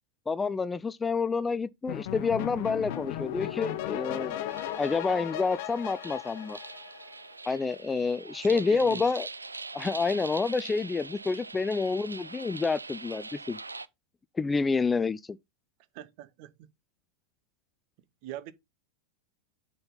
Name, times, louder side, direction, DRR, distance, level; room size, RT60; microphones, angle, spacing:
voice 1, 0.3-4.3 4.8-6.6 7.5-9.3 9.7-13.6 14.4-15.4, left 4 dB, 15° left, 0.3 m, -28 dB
sound 1, 1.9-7.3, left 12 dB, 50° left, 1.0 m, -36 dB
sound 2, 4.5-13.9, right 3 dB, 80° right, 0.4 m, -43 dB
voice 2, 8.4-9.0 15.9-16.5 18.2-18.5, right 13 dB, 45° right, 0.8 m, -42 dB
7.7 x 4.2 x 5.3 m
figure-of-eight pair, 90°, 0 cm